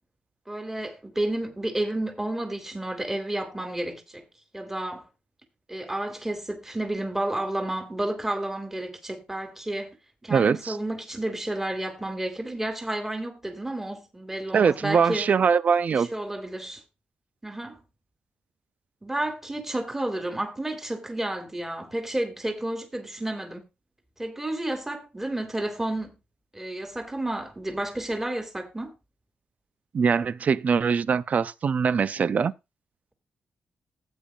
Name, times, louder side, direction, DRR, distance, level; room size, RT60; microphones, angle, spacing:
voice 1, 0.5-4.2 4.5-5.0 5.7-9.9 10.2-15.3 15.9-16.8 17.4-17.8 19.0-23.7 24.2-26.1 26.5-28.9, right 1 dB, 15° right, 2.4 m, -31 dB
voice 2, 10.3-10.8 14.5-16.1 29.9-32.5, right 6 dB, 50° right, 0.5 m, -22 dB
15.5 x 8.4 x 2.4 m
cardioid pair, 85°, 3 cm